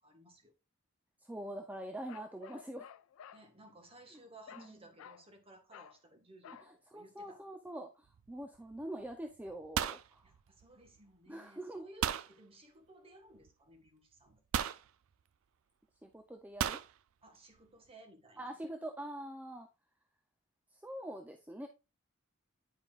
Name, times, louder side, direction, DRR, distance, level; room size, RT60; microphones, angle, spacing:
voice 1, 0.0-0.5 3.3-7.4 10.2-14.7 17.2-18.5, right 1 dB, 30° right, 1.4 m, -58 dB
voice 2, 1.2-2.9 4.1-4.2 4.6-4.7 6.6-10.3 11.3-11.9 16.0-16.8 18.4-19.7 20.7-21.7, right 1 dB, 10° right, 0.5 m, -44 dB
Bark, 2.1-3.5 4.5-4.7 5.0-5.3 5.7-6.0 6.4-6.7, left 8 dB, 75° left, 0.3 m, -53 dB
sound 1, 8.1-8.4 8.7-9.1 9.4-11.0 12.0-12.3 13.5-13.6 14.5-14.9 16.6-16.9, right 9 dB, 75° right, 0.4 m, -35 dB
9.1 x 5.1 x 2.4 m
head